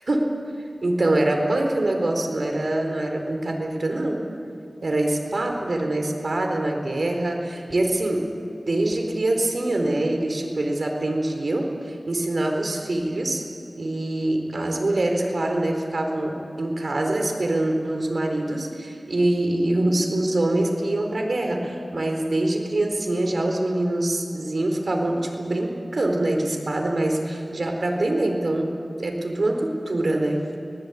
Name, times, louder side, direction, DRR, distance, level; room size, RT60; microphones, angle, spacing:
voice 1, 0.1-0.4 0.8-4.2 4.8-8.3 8.7-13.4 13.8-28.7 29.0-30.4, right 1 dB, 70° right, 3 dB, 4.3 m, -24 dB
24.5 x 20.5 x 8.5 m, 2.6 s
wide cardioid pair, 55°, 0 cm